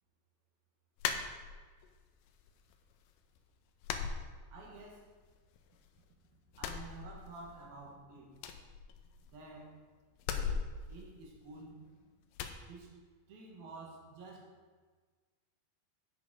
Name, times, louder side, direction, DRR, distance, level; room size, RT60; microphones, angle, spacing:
sound 1, 1.0-1.9 2.3-3.0 3.2-3.4 3.8-5.0 5.3-6.1 6.5-7.7 7.9-8.0 8.3-9.5 10.2-11.8 12.3-12.6, left 6 dB, 85° left, 1.9 m, -39 dB
voice 1, 4.5-5.0 6.6-8.3 9.2-9.8 10.2-10.6 10.9-11.8 12.7-12.9 13.3-14.5, right 3 dB, 70° right, -1 dB, 3.4 m, -50 dB
11.0 x 7.8 x 4.0 m, 1.4 s
omnidirectional pair, 4.5 m